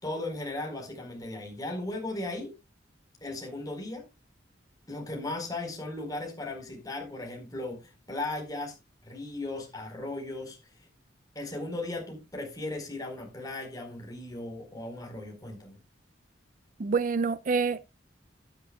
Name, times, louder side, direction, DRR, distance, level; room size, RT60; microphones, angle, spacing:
voice 1, 0.0-2.5 3.2-4.1 4.9-8.7 9.0-10.9 11.3-15.8, left 2 dB, 20° left, 4.4 m, -37 dB
voice 2, 16.8-17.9, right 5 dB, 45° right, 0.4 m, -27 dB
13.5 x 10.5 x 2.3 m
head